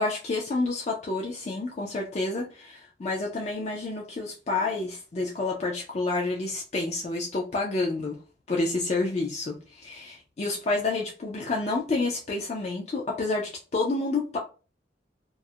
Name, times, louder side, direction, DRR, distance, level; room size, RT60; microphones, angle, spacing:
voice 1, 0.0-8.2 8.5-14.4, left 3 dB, 35° left, 0.4 m, -29 dB
2.3 x 2.0 x 2.6 m
head